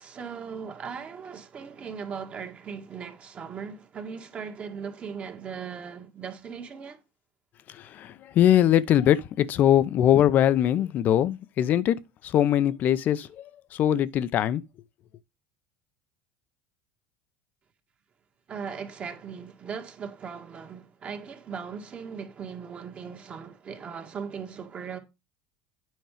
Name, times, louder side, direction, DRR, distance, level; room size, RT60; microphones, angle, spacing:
voice 1, 0.0-7.0 18.5-25.0, right 6 dB, 35° right, 1.9 m, -38 dB
voice 2, 7.7-14.6, left 11 dB, 50° left, 0.7 m, -22 dB
9.4 x 4.4 x 5.0 m
supercardioid pair, 110°, 4 cm